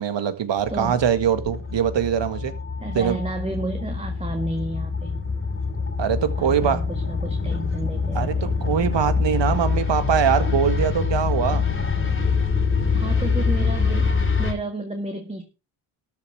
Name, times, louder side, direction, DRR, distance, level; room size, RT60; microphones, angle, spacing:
voice 1, 0.0-2.5 3.0-3.2 6.0-6.8 8.2-11.6, right 8 dB, 60° right, 1.9 m, -22 dB
sound 1, 0.6-14.5, left 5 dB, 25° left, 2.9 m, -25 dB
voice 2, 2.8-5.2 6.4-8.6 9.2-9.3 12.9-15.4, right 2 dB, 15° right, 1.9 m, -31 dB
13.5 x 7.3 x 4.7 m
cardioid pair, 85°, 48 cm